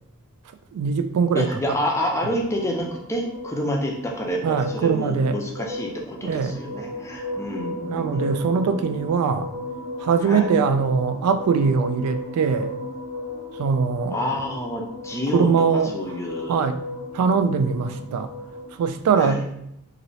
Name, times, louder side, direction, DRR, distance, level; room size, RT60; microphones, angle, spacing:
voice 1, 0.7-1.5 4.4-5.4 6.2-6.6 7.9-9.5 10.0-12.7 13.6-14.2 15.3-15.9 16.5-16.8 17.1-18.3 18.8-19.4, right 5 dB, 90° right, 12 dB, 0.3 m, -21 dB
voice 2, 1.3-8.7 10.2-10.5 14.1-15.5 15.9-16.6 17.6-18.0 19.2-19.5, equal, 10° left, 0 dB, 0.4 m, -28 dB
sound 1, 2.4-18.9, left 2 dB, 20° right, 0.7 m, -35 dB
3.0 x 2.6 x 2.7 m, 0.75 s
head